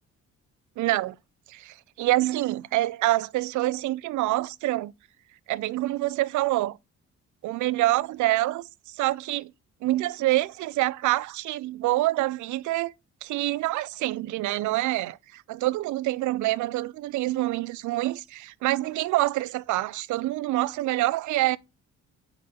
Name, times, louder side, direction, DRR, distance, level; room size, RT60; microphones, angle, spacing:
voice 1, 0.8-1.2 1.5-4.9 5.5-6.8 7.4-8.6 9.0-9.5 9.8-12.9 13.2-21.6, right 17 dB, 75° right, 0.4 m, -26 dB
4.3 x 4.2 x 5.7 m
cardioid pair, 90°, 30 cm